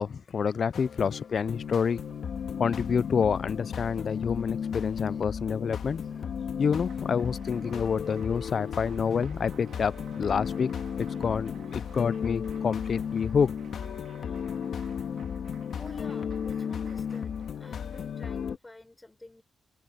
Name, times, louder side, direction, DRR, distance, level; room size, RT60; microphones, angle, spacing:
voice 1, 0.0-2.0 2.6-6.0 6.6-10.7 11.0-13.5, left 6 dB, 50° left, 0.4 m, -28 dB
sound 1, 0.7-18.6, left 7 dB, 70° left, 2.1 m, -34 dB
sound 2, 1.3-14.1, right 6 dB, 55° right, 4.7 m, -55 dB
Applause, 6.5-18.4, right 8 dB, 80° right, 3.1 m, -55 dB
voice 2, 14.0-14.4 15.8-19.4, left 2 dB, 15° left, 4.7 m, -50 dB
cardioid pair, 110°, 0 cm